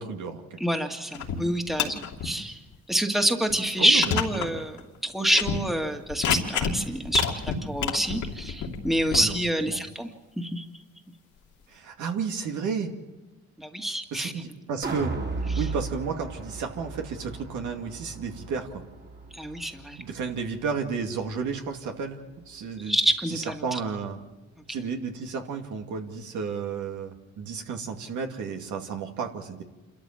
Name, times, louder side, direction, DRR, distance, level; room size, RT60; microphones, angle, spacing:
voice 1, 0.0-0.4 3.8-4.6 9.1-9.4 9.7-9.9 11.7-12.9 14.1-15.1 15.6-18.8 20.0-23.0 23.3-24.2 24.7-29.6, right 5 dB, 75° right, 3 dB, 2.5 m, -32 dB
voice 2, 0.6-2.6 2.9-10.1 10.4-10.6 13.6-14.3 19.3-20.0 22.9-23.8, equal, ahead, 4 dB, 2.0 m, -27 dB
sound 1, 1.1-1.4 1.7-2.3 2.7-2.8 3.5-3.6 4.0-4.5 4.8-4.9 5.3-5.6 6.1-6.8 7.1-9.2, left 7 dB, 75° left, 2.9 m, -28 dB
sound 2, 14.8-21.0 21.4-21.5, right 3 dB, 35° right, 3.0 m, -36 dB
28.0 x 13.5 x 7.4 m, 1.2 s
cardioid pair, 90°, 30 cm